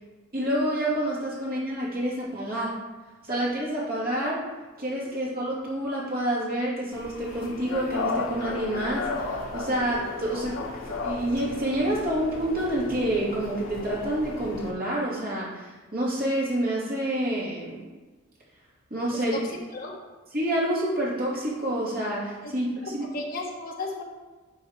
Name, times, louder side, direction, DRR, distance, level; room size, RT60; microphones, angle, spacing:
voice 1, 0.3-2.7 3.2-4.4 4.8-10.6 10.8-17.8 18.9-19.4 20.3-23.1, right 1 dB, 45° right, -6 dB, 2.9 m, -28 dB
sound 1, 6.9-14.7, left 3 dB, 75° left, 1.0 m, -34 dB
voice 2, 22.8-24.0, left 3 dB, 45° left, 0 dB, 1.2 m, -34 dB
10.5 x 4.9 x 4.7 m, 1.3 s
head